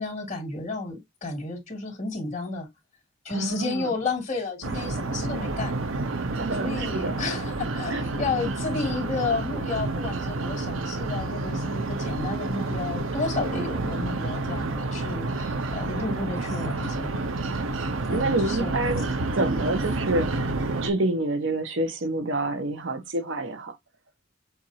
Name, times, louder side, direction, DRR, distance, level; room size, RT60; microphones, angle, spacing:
voice 1, 0.0-2.7 3.2-5.7 6.6-17.2 18.1-18.8, left 3 dB, 35° left, 2.7 m, -32 dB
voice 2, 3.3-3.9 6.3-7.3 7.9-8.0 18.1-19.1 19.3-20.5 20.8-23.8, right 2 dB, 65° right, 1.0 m, -28 dB
sound 1, 4.6-20.9, right 2 dB, 90° right, 0.9 m, -29 dB
7.1 x 2.6 x 2.8 m
head